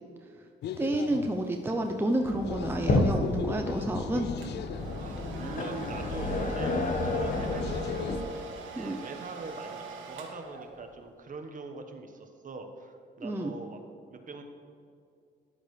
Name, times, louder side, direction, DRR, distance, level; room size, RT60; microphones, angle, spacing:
sound 1, 0.6-8.2, left 9 dB, 60° left, 0.4 m, -41 dB
voice 1, 0.8-4.3 8.8-9.0 13.2-13.5, right 1 dB, 10° right, 3 dB, 0.6 m, -30 dB
sound 2, 2.2-8.2, left 2 dB, 40° left, 1.4 m, -31 dB
Domestic sounds home sounds, 4.4-11.1, right 5 dB, 80° right, 1.5 m, -44 dB
voice 2, 5.0-8.1 8.7-13.8 14.1-14.4, right 3 dB, 40° right, 5 dB, 1.3 m, -42 dB
13.0 x 10.5 x 3.3 m, 2.4 s
cardioid pair, 90°, 20 cm